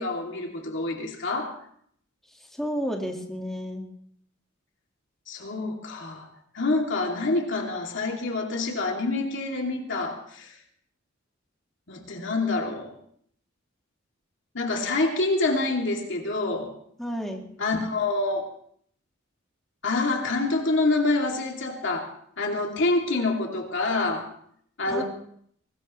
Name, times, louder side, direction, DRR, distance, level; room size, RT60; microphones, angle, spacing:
voice 1, 0.0-1.5 5.3-6.3 6.5-10.5 11.9-12.9 14.5-16.7 17.6-18.5 19.8-22.1 22.4-24.3 24.8-25.0, left 2 dB, 65° left, 0 dB, 2.9 m, -26 dB
voice 2, 2.5-3.9 17.0-17.5 24.9-25.0, equal, ahead, 0 dB, 1.9 m, -31 dB
23.0 x 19.5 x 3.2 m, 0.65 s
head